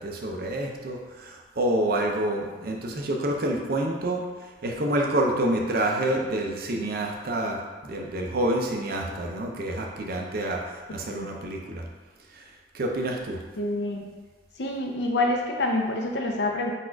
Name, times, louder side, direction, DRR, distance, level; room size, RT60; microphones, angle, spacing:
voice 1, 0.0-4.2 4.6-11.8 12.3-12.4 12.7-13.4, right 1 dB, 55° right, 1 dB, 0.6 m, -28 dB
voice 2, 13.6-14.0 14.6-16.7, left 2 dB, 65° left, 1 dB, 0.6 m, -27 dB
4.1 x 2.5 x 4.5 m, 1.4 s
head